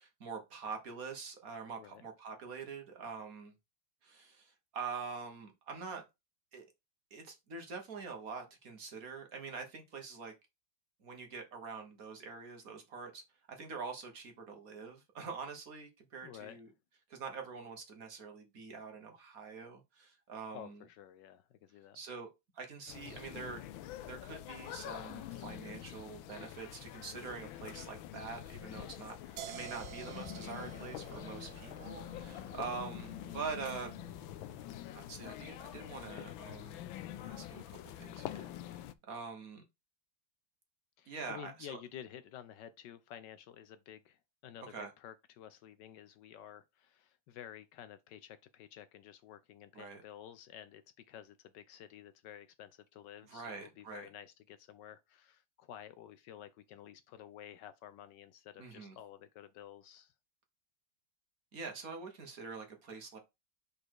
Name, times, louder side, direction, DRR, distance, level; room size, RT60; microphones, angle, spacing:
voice 1, 0.0-3.5 4.0-6.0 6.5-6.6 7.1-10.3 11.0-13.2 13.5-16.7 17.1-20.8 21.9-22.3 22.5-23.6 24.0-33.9 34.9-36.9 37.2-39.6 41.1-41.8 44.7-44.9 49.7-50.0 53.3-54.1 58.6-59.0 61.5-63.2, right 5 dB, 50° right, 1.6 m, -45 dB
voice 2, 16.2-16.6 20.5-22.0 41.0-50.8 51.1-60.1, left 10 dB, 75° left, 1.1 m, -51 dB
sound 1, 22.9-38.9, left 13 dB, 90° left, 1.4 m, -46 dB
sound 2, 29.4-35.2, right 8 dB, 70° right, 1.1 m, -51 dB
5.0 x 4.2 x 4.6 m
omnidirectional pair, 2.1 m